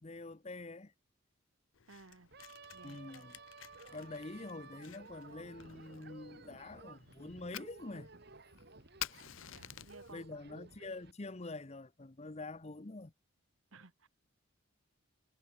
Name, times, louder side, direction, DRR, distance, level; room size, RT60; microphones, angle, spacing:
voice 1, 0.0-0.9 2.8-3.4 3.9-8.1 10.1-13.1, left 2 dB, 30° left, 0.8 m, -46 dB
Fire, 1.7-10.1, left 11 dB, 65° left, 0.8 m, -51 dB
voice 2, 1.9-2.3 2.7-3.0 9.5-10.4 13.7-14.1, right 3 dB, 70° right, 1.6 m, -57 dB
sound 1, 2.3-11.1, right 3 dB, 50° right, 1.8 m, -55 dB
head